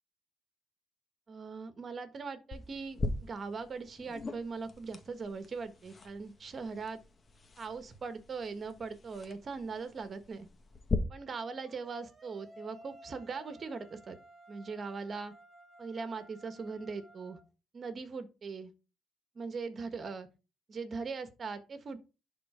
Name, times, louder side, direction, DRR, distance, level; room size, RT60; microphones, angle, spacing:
voice 1, 1.3-7.0 7.6-10.5 11.1-14.2 14.5-15.3 15.8-17.4 17.7-18.7 19.3-20.3 20.7-22.0, right 4 dB, 45° right, 1.5 m, -40 dB
sound 1, 2.5-10.9, left 3 dB, 35° left, 1.3 m, -41 dB
sound 2, 11.7-17.4, right 1 dB, 15° right, 2.7 m, -56 dB
11.0 x 4.1 x 5.0 m
cardioid pair, 90°, 0 cm